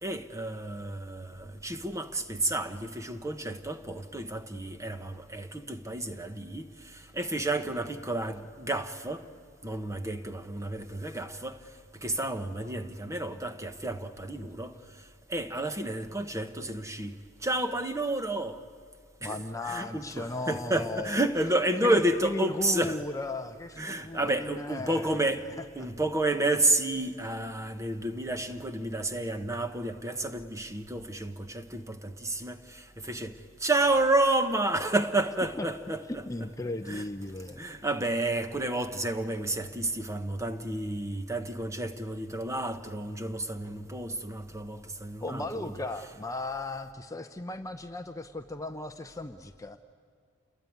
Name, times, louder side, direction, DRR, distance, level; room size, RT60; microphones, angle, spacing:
voice 1, 0.0-9.2 9.6-11.6 12.0-18.6 19.2-23.0 23.8-36.2 36.9-37.0 37.6-45.7, right 2 dB, 15° right, 1.1 m, -31 dB
voice 2, 19.2-21.2 21.8-25.3 25.8-25.9 35.6-35.7 36.1-37.6 45.2-49.8, left 2 dB, 15° left, 0.7 m, -36 dB
28.0 x 22.0 x 9.5 m
head